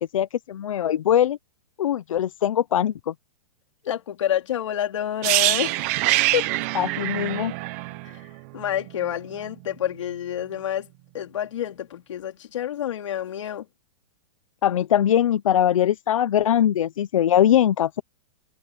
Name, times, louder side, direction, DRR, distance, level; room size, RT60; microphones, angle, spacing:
voice 1, 0.0-1.4 1.8-3.1 6.7-7.5 14.6-18.0, left 10 dB, 85° left, 0.8 m, -21 dB
voice 2, 3.8-5.9 6.3-6.5 8.0-8.2 8.5-10.9 11.1-13.7, left 10 dB, 70° left, 4.3 m, -28 dB
sound 1, 5.2-9.1 9.3-9.5, right 19 dB, 30° right, 1.2 m, -24 dB
supercardioid pair, 180°, 17 cm